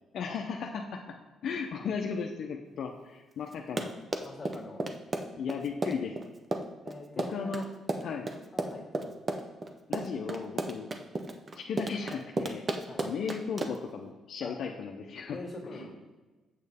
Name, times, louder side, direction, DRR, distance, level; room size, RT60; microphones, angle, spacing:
voice 1, 0.1-1.2 1.4-3.9 5.4-6.1 7.3-7.6 8.0-8.3 9.9-10.9 11.6-12.7 13.0-15.4 15.7-15.8, left 6 dB, 65° left, 2 dB, 0.6 m, -35 dB
Run, 3.5-13.9, right 2 dB, 30° right, 0.7 m, -33 dB
voice 2, 4.2-4.8 6.8-7.6 8.5-9.1 12.9-13.1 14.4-14.6 15.3-15.9, left 2 dB, 25° left, 0 dB, 2.0 m, -43 dB
7.4 x 6.5 x 3.5 m, 1.2 s
cardioid pair, 90°, 0 cm